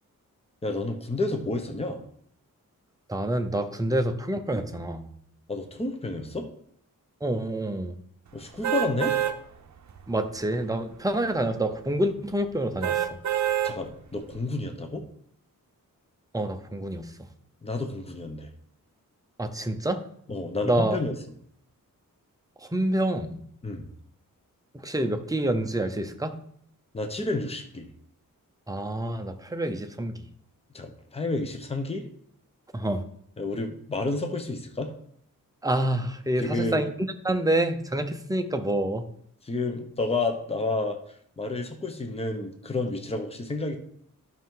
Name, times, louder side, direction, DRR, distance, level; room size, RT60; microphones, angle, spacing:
voice 1, 0.6-2.0 5.5-6.5 8.3-9.2 13.6-15.0 17.6-18.5 20.3-21.1 23.6-23.9 26.9-27.9 30.7-32.1 33.4-34.9 36.4-36.8 39.5-41.0 41.4-43.8, left 2 dB, 15° left, 5 dB, 0.9 m, -30 dB
voice 2, 3.1-5.1 7.2-7.9 10.1-13.2 16.3-17.1 19.4-20.0 20.6-21.0 22.6-23.4 24.8-26.3 28.7-30.2 32.7-33.0 35.6-36.9 37.2-39.0, right 1 dB, 10° right, 6 dB, 0.7 m, -27 dB
sound 1, 8.6-9.4 9.9-10.0 12.8-13.8 14.3-14.4, right 11 dB, 55° right, 0.7 m, -26 dB
12.0 x 5.8 x 3.8 m, 0.66 s
wide cardioid pair, 145°, 34 cm